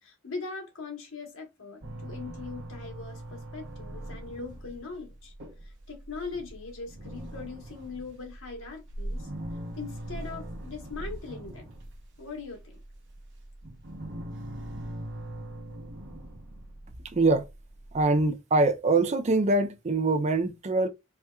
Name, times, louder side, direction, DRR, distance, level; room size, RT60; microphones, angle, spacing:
voice 1, 0.0-5.3 5.6-9.3 9.8-11.7 12.2-12.8, left 4 dB, 75° left, 1.2 m, -41 dB
sound 1, 1.8-12.0 12.4-18.0, right 1 dB, 60° right, 0.9 m, -41 dB
voice 2, 17.1-17.5 17.9-20.9, right 2 dB, 35° right, 0.4 m, -24 dB
4.2 x 2.4 x 2.3 m
head